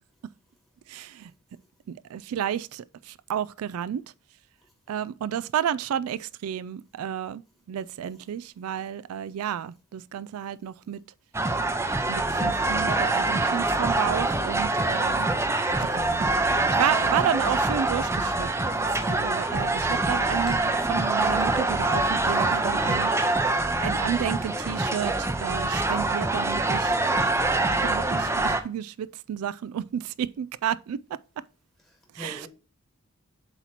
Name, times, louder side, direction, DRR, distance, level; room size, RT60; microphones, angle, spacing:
voice 1, 0.9-1.3 1.9-4.0 4.9-7.4 7.7-11.0 12.1-15.3 15.8-18.5 19.0-20.6 20.9-23.1 23.8-27.4 27.7-31.2 32.1-32.5, right 9 dB, 80° right, 0.3 m, -31 dB
sound 1, 11.3-28.6, right 2 dB, 10° right, 0.5 m, -25 dB
voice 2, 14.7-15.0 15.3-16.2 31.8-32.5, equal, 10° left, 1.3 m, -45 dB
7.9 x 3.0 x 5.7 m
head